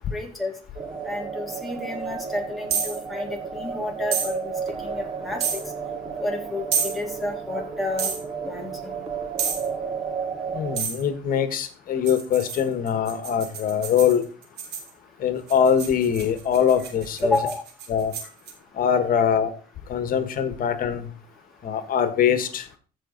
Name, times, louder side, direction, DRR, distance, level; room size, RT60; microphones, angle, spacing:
voice 1, 0.1-0.5 1.1-4.5 4.8-5.6 6.2-8.1 8.4-9.0 17.2-17.6, left 2 dB, ahead, 3.5 m, -30 dB
sound 1, 0.8-10.8, right 6 dB, 35° right, 1.8 m, -33 dB
sound 2, 2.7-3.0 4.1-4.3 5.4-5.6 6.7-7.0 8.0-8.2 9.4-9.7 10.8-11.0 12.1-14.9 15.5-18.5, right 7 dB, 80° right, 3.1 m, -29 dB
voice 2, 10.5-14.2 15.2-17.4 17.9-18.1 18.8-19.5 19.9-21.1 21.6-22.6, left 8 dB, 55° left, 1.5 m, -23 dB
15.0 x 5.4 x 4.0 m
cardioid pair, 110°, 17 cm